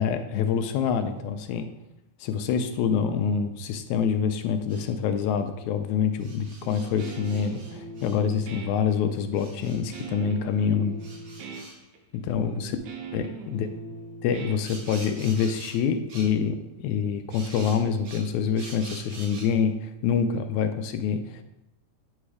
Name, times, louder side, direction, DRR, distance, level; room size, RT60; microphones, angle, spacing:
voice 1, 0.0-1.7 2.2-11.0 12.1-12.8 13.1-13.7 14.2-21.4, left 7 dB, 80° left, 8 dB, 1.9 m, -26 dB
sound 1, 4.7-4.9 6.2-8.2 9.3-10.1 11.0-11.8 14.6-15.8 16.1-16.3 17.3-19.5, right 3 dB, 60° right, 1.1 m, -45 dB
Guitar, 6.6-15.3, right 4 dB, 80° right, 2.1 m, -41 dB
8.7 x 3.2 x 4.8 m, 0.89 s
omnidirectional pair, 3.4 m